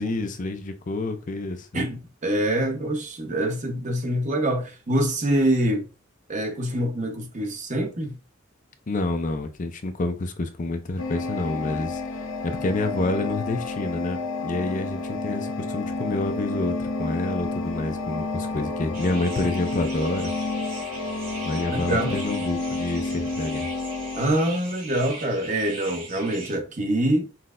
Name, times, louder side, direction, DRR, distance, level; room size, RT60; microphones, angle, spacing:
voice 1, 0.0-1.7 8.9-20.3 21.4-23.7, left 2 dB, 40° left, 0.5 m, -28 dB
voice 2, 1.7-5.9 6.3-8.2 21.7-22.2 24.1-27.3, right 1 dB, 40° right, 1.0 m, -25 dB
sound 1, 11.0-24.3, left 3 dB, 80° left, 0.9 m, -30 dB
sound 2, 18.9-26.6, right 3 dB, 70° right, 2.8 m, -40 dB
5.8 x 3.2 x 2.5 m
head